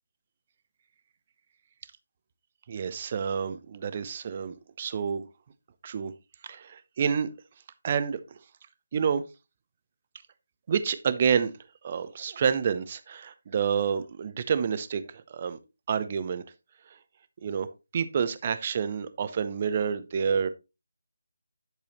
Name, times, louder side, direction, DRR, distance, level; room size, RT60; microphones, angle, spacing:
voice 1, 2.7-5.2 5.8-6.1 6.5-7.3 7.8-8.2 8.9-9.2 10.7-11.5 11.8-15.6 15.9-16.4 17.4-17.7 17.9-20.5, right 7 dB, 30° right, 0.8 m, -28 dB
11.0 x 6.7 x 3.0 m
figure-of-eight pair, 155°, 0 cm